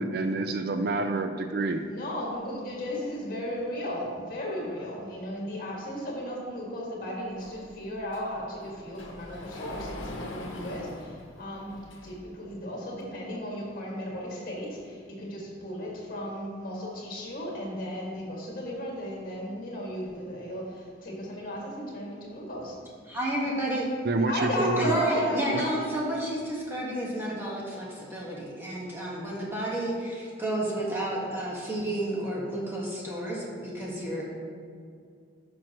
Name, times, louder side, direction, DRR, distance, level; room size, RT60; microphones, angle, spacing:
voice 1, 0.0-1.8 24.0-24.9 25.5-25.6, right 3 dB, 50° right, 7 dB, 0.4 m, -28 dB
voice 2, 1.9-22.8 24.2-26.0, equal, 45° left, -3 dB, 1.9 m, -35 dB
Sliding door, 7.4-12.4, left 1 dB, 80° left, 1.0 m, -43 dB
voice 3, 23.1-23.9 24.6-34.3, right 1 dB, 10° right, -5 dB, 1.4 m, -31 dB
10.5 x 6.0 x 3.0 m, 2.2 s
head